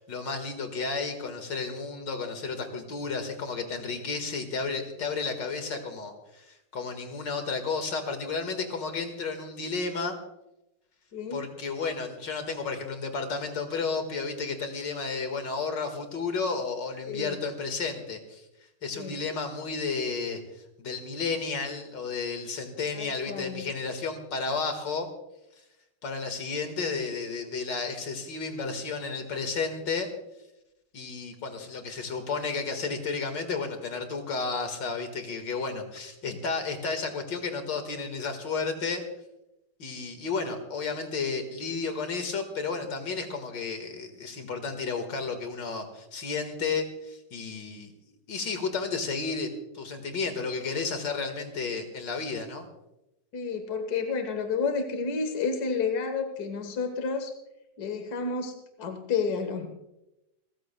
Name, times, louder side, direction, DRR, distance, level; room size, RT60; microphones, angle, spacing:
voice 1, 0.0-10.2 11.3-18.4 18.8-20.4 20.8-25.1 26.0-30.1 30.9-39.0 39.8-47.9 48.3-52.7, left 4 dB, 75° left, 6 dB, 2.4 m, -32 dB
voice 2, 11.1-11.4 17.1-17.4 19.0-19.2 22.9-23.7 36.3-36.4 53.3-57.3 57.8-59.7, left 5 dB, 60° left, 6 dB, 1.7 m, -31 dB
30.0 x 14.0 x 2.2 m, 0.91 s
omnidirectional pair, 2.0 m